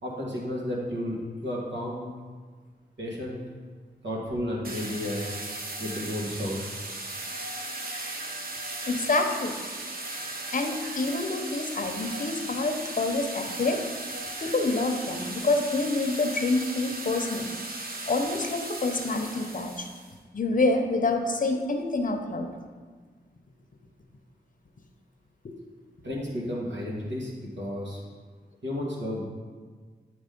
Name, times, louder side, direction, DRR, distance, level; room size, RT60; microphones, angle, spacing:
voice 1, 0.0-2.1 3.0-3.4 4.0-5.2 5.8-6.6 26.0-28.0 28.6-29.3, left 1 dB, 75° right, -4 dB, 1.8 m, -32 dB
sound 1, 4.6-20.1, right 2 dB, 50° right, 1.0 m, -37 dB
voice 2, 8.9-9.6 10.5-13.8 14.4-17.5 18.1-19.9 20.3-22.5, left 3 dB, 45° left, 4 dB, 0.8 m, -27 dB
9.3 x 3.2 x 5.2 m, 1.5 s
cardioid pair, 55°, 19 cm